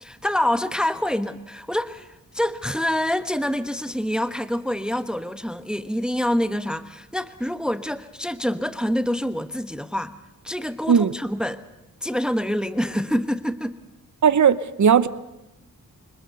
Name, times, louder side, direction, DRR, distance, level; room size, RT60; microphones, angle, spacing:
voice 1, 0.0-10.1 10.4-11.6 12.0-13.8, left 1 dB, ahead, 11 dB, 1.1 m, -26 dB
voice 2, 14.2-15.1, right 7 dB, 50° right, 15 dB, 1.0 m, -17 dB
25.5 x 20.0 x 6.9 m, 0.95 s
cardioid pair, 55°, 37 cm